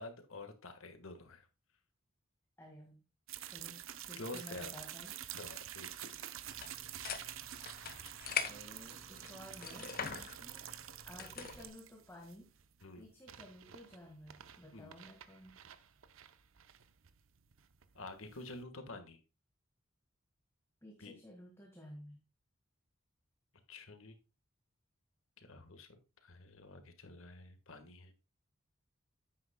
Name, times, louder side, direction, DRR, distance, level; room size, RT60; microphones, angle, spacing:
voice 1, 0.0-1.5 4.2-4.7 5.3-6.1 12.8-13.1 14.7-14.9 17.9-19.2 21.0-21.1 23.7-24.2 25.4-25.9 26.2-28.1, left 2 dB, 80° left, 1.5 m, -49 dB
voice 2, 2.6-3.0 3.5-3.8 4.1-5.1 8.5-10.0 10.3-10.7 11.1-12.5 13.0-15.6 20.8-22.2, left 1 dB, 10° left, 1.7 m, -53 dB
sound 1, 3.3-18.6, right 11 dB, 75° right, 0.7 m, -49 dB
sound 2, 6.5-11.7, left 6 dB, 45° left, 1.1 m, -43 dB
10.0 x 8.5 x 2.2 m
head